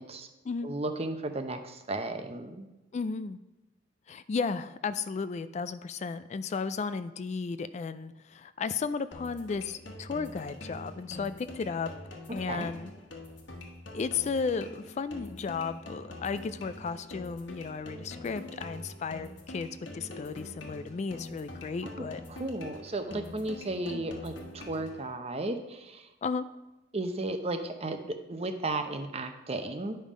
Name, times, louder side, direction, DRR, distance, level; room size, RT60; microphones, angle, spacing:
voice 1, 0.6-2.7 12.5-12.7 21.8-26.1 26.9-30.0, right 2 dB, 35° right, 7 dB, 0.7 m, -34 dB
voice 2, 2.9-3.4 4.1-11.9 12.3-12.9 13.9-22.2 23.9-24.1 26.2-26.5, left 5 dB, 40° left, 13 dB, 0.3 m, -34 dB
sound 1, 9.1-25.1, left 1 dB, 80° left, 1.4 m, -45 dB
10.0 x 5.5 x 5.0 m, 1.0 s
head